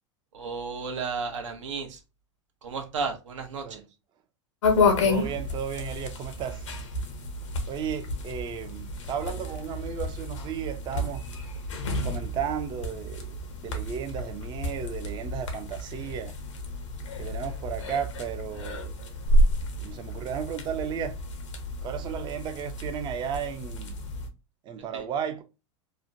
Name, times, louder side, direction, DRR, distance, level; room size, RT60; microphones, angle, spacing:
voice 1, 0.3-2.0 2.6-3.8 24.9-25.1, right 5 dB, 90° right, 0.7 m, -33 dB
sound 1, 4.6-24.3, left 1 dB, 90° left, 0.7 m, -30 dB
voice 2, 5.0-6.6 7.7-11.2 12.0-13.3 13.6-16.3 17.2-18.9 19.8-21.1 21.8-24.0 24.7-25.4, right 8 dB, 30° right, 0.3 m, -34 dB
3.0 x 2.0 x 2.5 m
hypercardioid pair, 105°, 15 cm